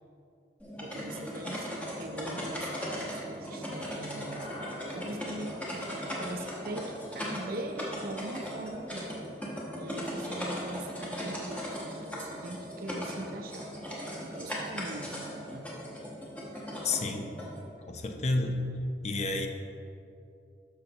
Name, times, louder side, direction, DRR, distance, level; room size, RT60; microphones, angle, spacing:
sound 1, 0.6-17.6, equal, 5° left, 1.1 m, -38 dB
voice 1, 0.8-9.1 9.8-13.7 14.3-15.7, right 1 dB, 50° right, 5 dB, 0.6 m, -41 dB
sound 2, 4.2-8.6, equal, 65° left, 1.8 m, -49 dB
voice 2, 16.8-17.3 17.9-18.7 19.0-19.5, left 2 dB, 35° left, 4 dB, 0.5 m, -30 dB
12.5 x 5.7 x 2.9 m, 2.6 s
head